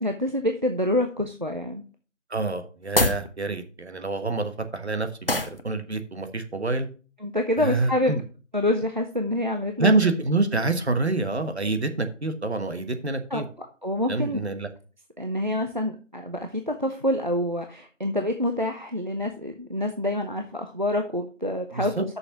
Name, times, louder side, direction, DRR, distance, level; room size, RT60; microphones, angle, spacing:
voice 1, 0.0-1.8 7.2-8.1 8.5-9.9 13.3-13.4 13.8-14.4 15.2-21.9, left 1 dB, 40° right, 5 dB, 0.6 m, -27 dB
voice 2, 2.3-6.9 7.6-8.2 9.8-13.4 14.1-14.7 21.7-22.0, right 3 dB, 60° right, 8 dB, 1.4 m, -26 dB
sound 1, 2.8-3.3 5.3-5.6, left 2 dB, 50° left, 0.8 m, -23 dB
6.5 x 5.8 x 5.9 m, 0.37 s
figure-of-eight pair, 180°, 37 cm